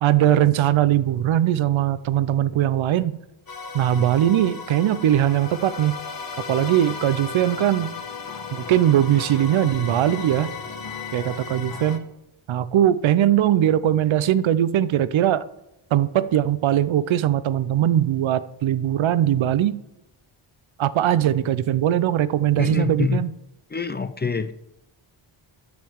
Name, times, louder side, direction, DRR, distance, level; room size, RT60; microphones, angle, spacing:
voice 1, 0.0-3.2 3.7-6.0 6.5-7.9 8.5-10.5 11.1-12.0 12.5-15.5 15.9-19.8 20.8-23.3, right 11 dB, 70° right, 0.7 m, -20 dB
sound 1, 3.5-12.0, left 5 dB, 45° left, 1.2 m, -35 dB
voice 2, 22.6-23.2 23.7-24.5, left 5 dB, 20° left, 0.4 m, -25 dB
10.5 x 6.9 x 4.6 m
cardioid pair, 85°, 50 cm